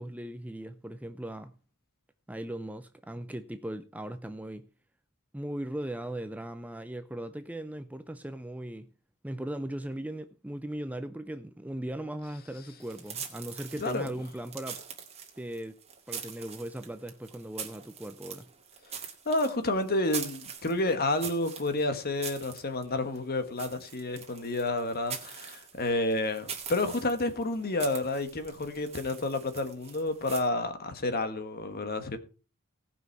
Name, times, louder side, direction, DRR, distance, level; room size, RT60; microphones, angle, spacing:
voice 1, 0.0-1.6 2.3-4.7 5.3-8.9 9.2-14.8 15.4-15.8 16.1-18.5, right 1 dB, 5° right, 0.5 m, -38 dB
sound 1, 12.8-30.4, right 7 dB, 30° right, 2.1 m, -43 dB
voice 2, 13.8-14.1 19.2-32.2, left 2 dB, 45° left, 1.5 m, -30 dB
18.0 x 6.1 x 4.6 m
head